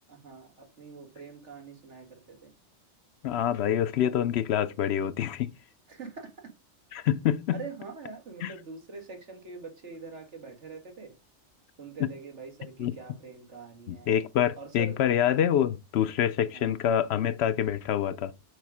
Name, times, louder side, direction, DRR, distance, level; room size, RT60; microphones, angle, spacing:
voice 1, 0.1-2.5 5.9-6.3 7.5-11.1 11.8-14.1 14.6-15.0 16.5-16.8, right 4 dB, 75° right, 2.1 m, -44 dB
voice 2, 3.2-5.5 6.9-7.6 8.4-8.5 12.0-12.1 12.8-12.9 13.9-18.3, left 10 dB, 70° left, 0.8 m, -26 dB
7.9 x 5.0 x 4.8 m
omnidirectional pair, 1.2 m